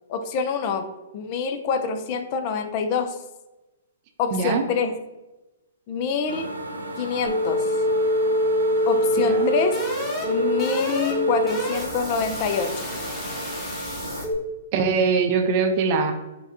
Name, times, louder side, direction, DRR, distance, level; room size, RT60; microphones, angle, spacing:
voice 1, 0.1-0.9 1.1-3.2 4.2-4.9 5.9-6.5 7.0-7.7 8.9-9.7 10.2-12.8, left 5 dB, 40° left, 7 dB, 0.5 m, -26 dB
voice 2, 4.3-4.6 9.2-9.5 14.7-16.1, right 5 dB, 45° right, 5 dB, 0.6 m, -22 dB
sound 1, 6.3-14.2, right 1 dB, 90° right, 0.5 m, -35 dB
sound 2, 7.3-14.3, equal, 15° left, 1.2 m, -25 dB
5.6 x 2.3 x 2.6 m, 1.0 s
hypercardioid pair, 125°, 0 cm